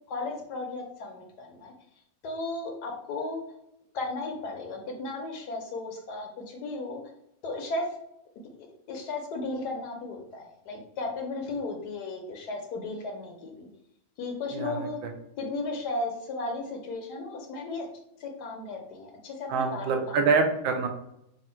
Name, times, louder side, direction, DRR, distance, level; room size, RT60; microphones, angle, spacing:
voice 1, 0.1-1.7 2.2-3.4 3.9-7.0 7.4-8.0 8.6-13.7 14.2-15.0 15.4-17.9 18.2-20.3, left 2 dB, 70° left, 2 dB, 1.0 m, -35 dB
voice 2, 19.5-20.9, right 4 dB, 75° right, 4 dB, 1.3 m, -25 dB
3.5 x 2.5 x 4.3 m, 0.79 s
omnidirectional pair, 2.2 m